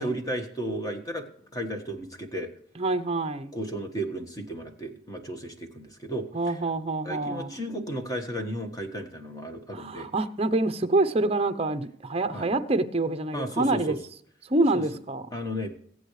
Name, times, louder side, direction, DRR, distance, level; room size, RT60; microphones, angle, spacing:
voice 1, 0.0-2.5 3.5-6.6 7.0-10.1 12.3-12.5 13.3-14.0 14.7-14.8 15.3-15.7, right 1 dB, 20° left, 1.4 m, -34 dB
voice 2, 2.8-3.5 6.3-7.5 9.7-14.0 14.5-15.3, right 2 dB, 30° right, 0.7 m, -26 dB
22.0 x 8.1 x 3.2 m
head